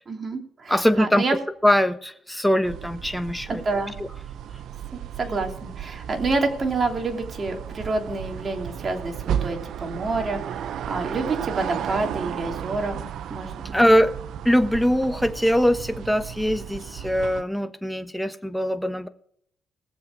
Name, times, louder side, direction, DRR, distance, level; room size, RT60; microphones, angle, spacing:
voice 1, 0.1-1.4 3.5-4.0 4.9-13.6, right 3 dB, 35° right, 3 dB, 3.0 m, -28 dB
voice 2, 0.7-1.2 1.6-3.6 4.0-4.1 13.7-14.1 14.4-19.1, equal, 5° left, 9 dB, 1.2 m, -22 dB
sound 1, 2.6-17.4, right 9 dB, 75° right, 0.7 m, -34 dB
19.5 x 7.5 x 4.8 m, 0.65 s
cardioid pair, 90°, 0 cm